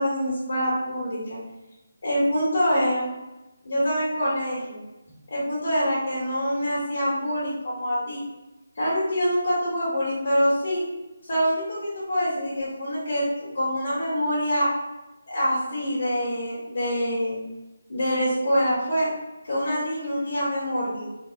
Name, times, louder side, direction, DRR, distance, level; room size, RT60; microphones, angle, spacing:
voice 1, 0.0-1.4 2.0-3.1 3.6-4.8 5.3-8.2 8.8-10.9 11.3-14.7 15.3-17.4 17.9-19.1 19.4-21.1, equal, 65° left, -9 dB, 1.3 m, -25 dB
3.4 x 2.0 x 2.5 m, 1.0 s
hypercardioid pair, 175°, 0 cm